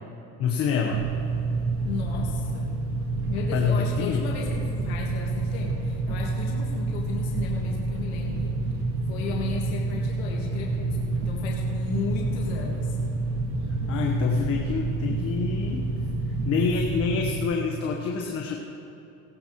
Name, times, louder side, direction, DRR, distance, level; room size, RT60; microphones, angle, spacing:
voice 1, 0.4-1.1 3.5-4.2 13.9-15.9 16.4-18.6, left 6 dB, 50° left, 0 dB, 1.3 m, -27 dB
sound 1, 0.9-17.3, right 2 dB, 45° right, 1.9 m, -28 dB
voice 2, 1.9-2.8 3.3-13.0, left 6 dB, 90° left, -1 dB, 1.7 m, -35 dB
18.0 x 11.5 x 3.2 m, 2.9 s
supercardioid pair, 110°, 30 cm